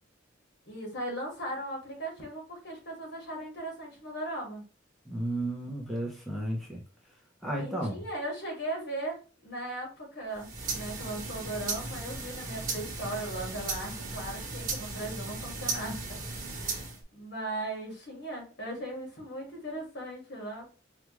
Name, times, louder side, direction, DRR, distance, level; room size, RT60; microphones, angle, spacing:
voice 1, 0.7-4.6 7.6-16.0 16.3-16.8 17.1-20.8, right 1 dB, 60° left, 1.9 m, -38 dB
voice 2, 5.1-6.8 7.4-8.0, right 1 dB, ahead, 0.8 m, -33 dB
sound 1, 10.3-17.0, right 3 dB, 45° right, 1.3 m, -36 dB
4.9 x 2.4 x 3.1 m
head